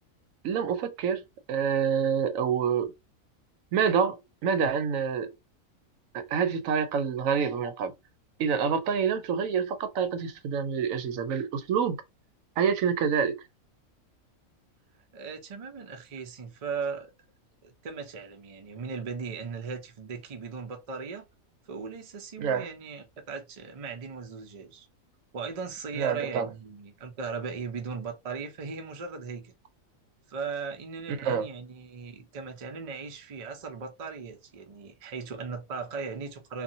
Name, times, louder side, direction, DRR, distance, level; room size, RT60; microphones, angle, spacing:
voice 1, 0.4-1.2 1.5-2.9 3.7-5.3 6.1-7.9 8.4-12.0 12.6-13.4 22.4-22.7 26.0-26.5 31.1-31.5, right 7 dB, 80° right, 1.0 m, -27 dB
voice 2, 15.1-17.1 17.6-21.3 21.7-24.9 25.3-29.5 30.3-36.6, right 5 dB, 45° right, 0.5 m, -38 dB
2.7 x 2.5 x 2.6 m
omnidirectional pair, 1.4 m